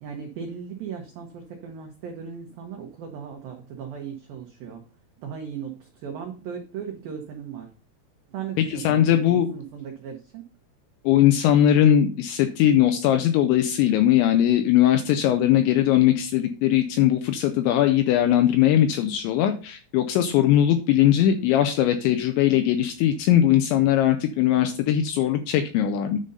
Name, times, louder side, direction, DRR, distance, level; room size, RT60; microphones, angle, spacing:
voice 1, 0.0-4.8 5.2-7.7 8.3-10.5, right 7 dB, 90° right, 3 dB, 2.0 m, -37 dB
voice 2, 8.6-9.5 11.0-26.2, left 11 dB, 80° left, 7 dB, 2.7 m, -20 dB
9.8 x 3.9 x 5.4 m, 0.37 s
omnidirectional pair, 5.7 m